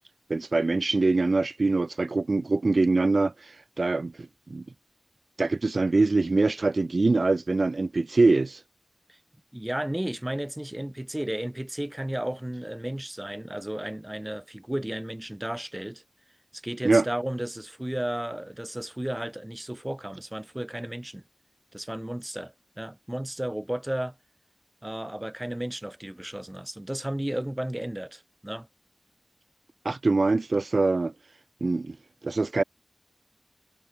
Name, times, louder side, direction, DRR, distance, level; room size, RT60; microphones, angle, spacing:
voice 1, 0.3-3.3 3.8-4.1 4.5-4.6 5.4-8.6 16.8-17.0 29.8-31.1 31.6-32.0 32.2-32.6, right 3 dB, 75° right, 0.5 m, -23 dB
voice 2, 9.5-16.0 16.5-21.2 21.7-24.2 24.8-28.7, right 1 dB, 20° right, 0.9 m, -33 dB
wide cardioid pair, 40°, 0 cm